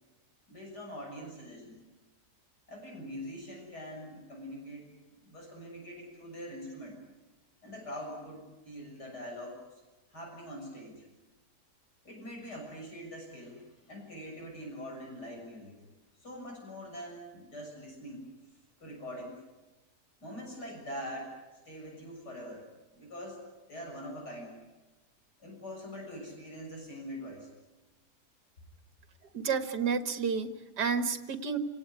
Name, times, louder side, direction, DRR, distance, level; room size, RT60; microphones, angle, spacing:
voice 1, 0.5-1.8 2.7-4.9 5.2-7.0 7.6-9.8 10.1-11.1 12.0-15.8 16.2-18.2 18.8-19.4 20.2-21.4 21.7-22.6 22.9-23.4 23.7-24.6 25.4-27.5, equal, 75° left, 0 dB, 7.6 m, -43 dB
voice 2, 29.3-31.6, right 5 dB, 80° right, 9 dB, 2.2 m, -31 dB
29.0 x 18.0 x 9.9 m, 1.1 s
omnidirectional pair, 1.7 m